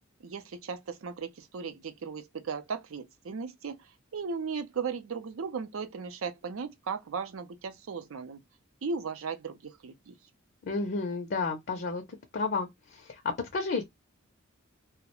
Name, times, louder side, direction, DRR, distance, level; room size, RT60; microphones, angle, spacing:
voice 1, 0.2-8.4 8.8-10.1, right 5 dB, 80° right, 0.5 m, -36 dB
voice 2, 10.6-12.0 12.3-13.2 13.5-13.8, left 3 dB, 55° left, 0.5 m, -31 dB
2.3 x 2.1 x 2.8 m
head